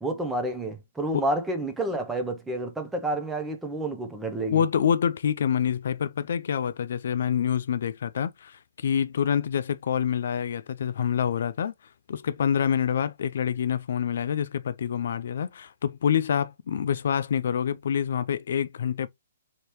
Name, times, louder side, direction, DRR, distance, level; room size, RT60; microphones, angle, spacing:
voice 1, 0.0-4.6, right 1 dB, 5° right, 0.6 m, -29 dB
voice 2, 4.5-11.7 12.1-19.1, left 8 dB, 60° left, 0.3 m, -26 dB
3.2 x 2.8 x 2.9 m
hypercardioid pair, 155°, 0 cm